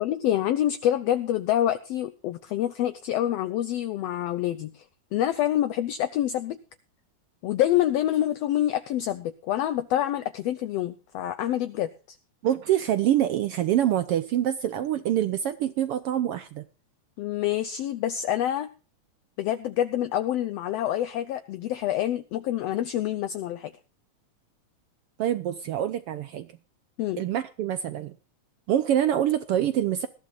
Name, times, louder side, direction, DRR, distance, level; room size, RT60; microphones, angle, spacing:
voice 1, 0.0-4.8 5.1-6.6 7.4-12.2 17.2-18.7 19.4-23.7 27.0-27.2, left 12 dB, 70° left, 11 dB, 1.7 m, -27 dB
voice 2, 12.4-16.6 25.2-26.5 27.2-28.1 28.7-30.1, right 11 dB, 75° right, 12 dB, 1.3 m, -25 dB
20.0 x 15.0 x 2.5 m, 0.34 s
omnidirectional pair, 3.4 m